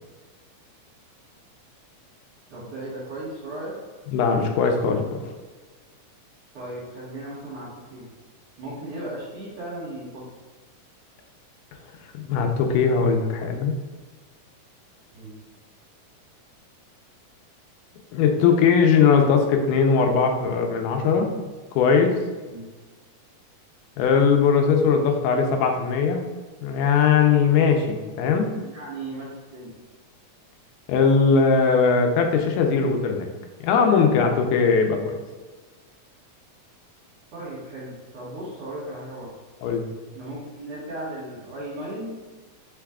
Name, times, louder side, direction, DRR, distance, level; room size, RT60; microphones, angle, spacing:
voice 1, 2.5-3.7 6.5-8.1 8.6-10.3 15.1-15.4 22.5-22.6 28.6-29.7 37.3-39.3 40.1-42.2, right 1 dB, 55° right, -8 dB, 1.7 m, -36 dB
voice 2, 4.1-5.2 12.1-13.7 18.1-21.3 21.8-22.2 24.0-26.3 26.6-28.5 30.9-33.3 33.6-35.2 39.6-39.8, left 5 dB, 90° left, 4 dB, 2.1 m, -20 dB
5.4 x 2.3 x 3.4 m, 1.3 s
omnidirectional pair, 3.6 m